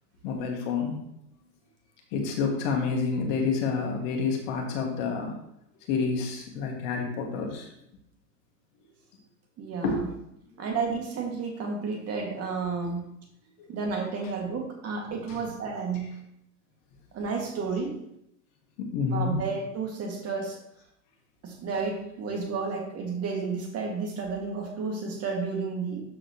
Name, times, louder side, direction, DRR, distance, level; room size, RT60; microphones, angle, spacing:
voice 1, 0.2-1.0 2.1-5.3 5.9-7.7 9.8-10.1 10.7-10.8 13.6-13.7 14.2-14.3 15.3-15.4 16.0-16.1 18.8-19.4, left 5 dB, 50° left, 1 dB, 2.3 m, -29 dB
voice 2, 9.6-10.1 10.6-13.1 13.7-16.1 17.1-18.0 19.1-20.6 21.4-26.0, right 4 dB, 30° right, 1 dB, 2.3 m, -31 dB
12.5 x 5.0 x 3.1 m, 0.78 s
figure-of-eight pair, 100°, 49 cm